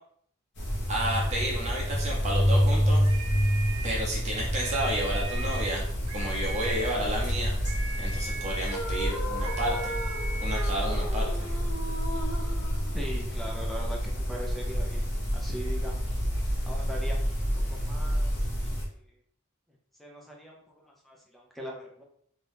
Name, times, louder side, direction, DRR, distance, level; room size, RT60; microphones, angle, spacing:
sound 1, 0.6-18.8, equal, 55° left, 0.8 m, -28 dB
voice 1, 0.9-3.1 3.8-5.8 6.1-7.5 8.0-9.9 10.4-11.5, right 1 dB, 35° right, -3 dB, 0.7 m, -31 dB
sound 2, 3.0-4.1 4.5-5.8 6.1-7.0 7.6-8.9 9.4-10.7, right 2 dB, 90° right, 0.6 m, -39 dB
sound 3, 8.6-13.5, equal, 80° left, 0.5 m, -38 dB
voice 2, 12.9-15.0 15.3-15.9 16.7-17.3 17.7-18.3 18.6-18.7 20.0-22.0, equal, ahead, -2 dB, 0.5 m, -40 dB
2.7 x 2.3 x 3.4 m, 0.65 s
head